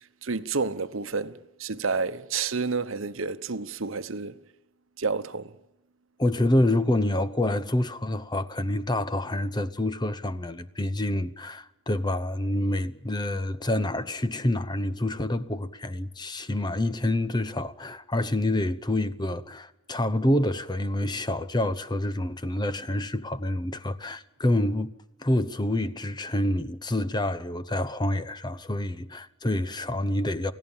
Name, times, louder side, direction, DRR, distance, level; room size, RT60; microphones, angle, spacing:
voice 1, 0.2-4.4 5.0-5.5, right 4 dB, 70° right, 1.0 m, -30 dB
voice 2, 6.2-24.9 25.2-30.5, left 1 dB, 20° left, 0.9 m, -27 dB
29.0 x 16.0 x 7.3 m
head